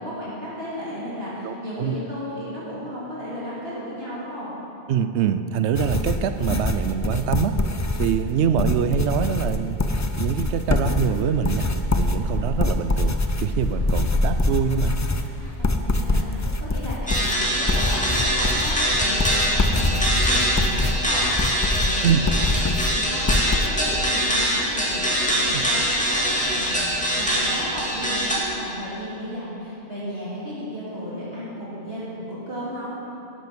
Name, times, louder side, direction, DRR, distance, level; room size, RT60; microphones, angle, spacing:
voice 1, 0.0-4.5 15.8-22.4 22.7-32.9, equal, 60° right, -9 dB, 3.2 m, -34 dB
voice 2, 1.4-1.9 4.9-7.6 8.0-9.8 10.2-11.7 12.0-15.0 22.0-22.2 25.5-25.6, right 8 dB, 80° right, 10 dB, 0.9 m, -24 dB
sound 1, 5.7-23.7, left 2 dB, 25° left, 0.4 m, -25 dB
sound 2, 10.9-16.5, left 1 dB, 65° left, 2.2 m, -29 dB
sound 3, 17.1-28.3, equal, 5° left, 2.2 m, -23 dB
11.0 x 10.5 x 6.1 m, 3.0 s
omnidirectional pair, 1.1 m